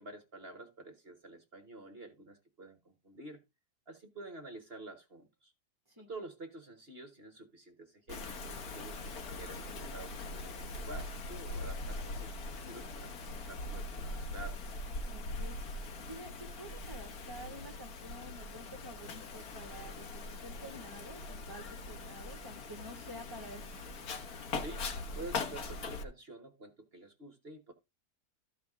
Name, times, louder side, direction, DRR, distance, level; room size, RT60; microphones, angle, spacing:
voice 1, 0.0-3.4 3.9-5.5 6.0-8.3 8.6-14.6 24.6-27.7, right 2 dB, 40° right, 1.5 m, -49 dB
Wind, 8.1-26.0, left 2 dB, 65° left, 1.6 m, -41 dB
voice 2, 15.1-15.5 16.0-23.8, equal, 15° right, 1.9 m, -49 dB
14.0 x 4.9 x 3.6 m
omnidirectional pair, 1.8 m